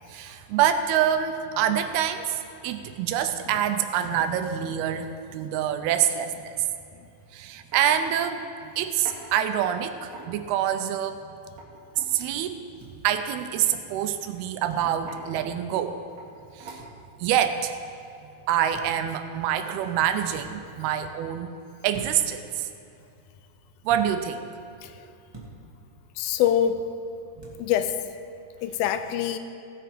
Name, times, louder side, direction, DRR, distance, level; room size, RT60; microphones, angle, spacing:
voice 1, 0.1-5.1 5.3-6.5 7.3-8.4 8.8-11.2 12.0-12.5 13.0-16.0 16.6-16.8 17.2-17.7 18.5-21.5 21.8-22.7 23.9-24.4, right 10 dB, 80° right, 8 dB, 2.5 m, -26 dB
sound 1, 7.0-7.2 7.7-7.9 9.1-9.2 10.0-10.6 11.4-12.2 13.8-14.1 14.8-15.3 16.2-16.3 16.6-17.1, right 3 dB, 50° right, 2.8 m, -44 dB
sound 2, 12.8-12.9 14.7-14.9 16.8-16.9 18.7-19.0 20.3-20.5 21.9-22.3 23.9-24.1 25.3-25.5 27.4-27.6, right 3 dB, 30° right, 0.4 m, -44 dB
voice 2, 26.2-26.9 27.6-28.0 28.6-29.4, left 9 dB, 80° left, 10 dB, 2.2 m, -25 dB
17.0 x 7.8 x 5.1 m, 2.7 s
omnidirectional pair, 4.6 m